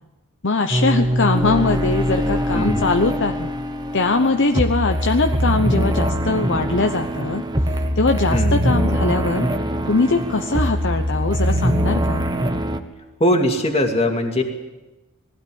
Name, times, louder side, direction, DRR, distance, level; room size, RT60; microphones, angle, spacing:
voice 1, 0.4-3.5 3.9-7.4 8.0-9.5 9.9-12.2, left 3 dB, 55° left, 5 dB, 0.9 m, -21 dB
sound 1, 0.7-12.8, equal, 20° right, 1.2 m, -22 dB
voice 2, 2.5-2.9 8.3-8.6 13.2-14.4, left 1 dB, 30° left, 3 dB, 2.5 m, -20 dB
20.5 x 16.0 x 8.7 m, 1.1 s
head